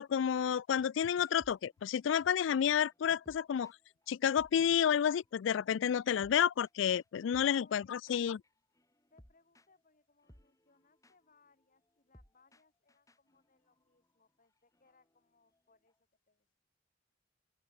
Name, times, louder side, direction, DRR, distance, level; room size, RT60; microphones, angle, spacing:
voice 1, 0.0-3.7 4.1-8.4, left 8 dB, 70° left, 0.3 m, -30 dB
sound 1, 1.2-4.1 4.3-16.0, equal, 15° left, 6.2 m, -66 dB
voice 2, 7.6-8.3 9.1-16.6, left 4 dB, 45° left, 5.3 m, -70 dB
open air
head